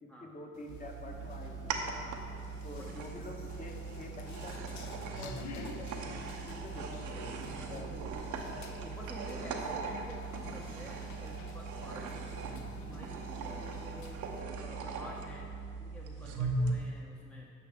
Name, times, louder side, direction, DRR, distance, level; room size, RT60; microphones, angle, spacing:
voice 1, 0.0-1.8 2.6-7.9 8.3-8.7, left 1 dB, 25° left, 1 dB, 1.1 m, -47 dB
sound 1, 0.5-14.4, left 6 dB, 70° left, 0.7 m, -52 dB
sound 2, 0.7-16.7, right 3 dB, 85° right, 0.8 m, -39 dB
sound 3, 1.1-15.7, right 3 dB, 45° right, 0.8 m, -51 dB
voice 2, 1.9-2.3 2.7-2.9 7.7-8.1 8.5-12.3 12.7-14.2 14.6-15.5 15.8-17.5, equal, 5° left, -2 dB, 0.6 m, -50 dB
9.0 x 5.8 x 3.6 m, 2.4 s
cardioid pair, 90°, 30 cm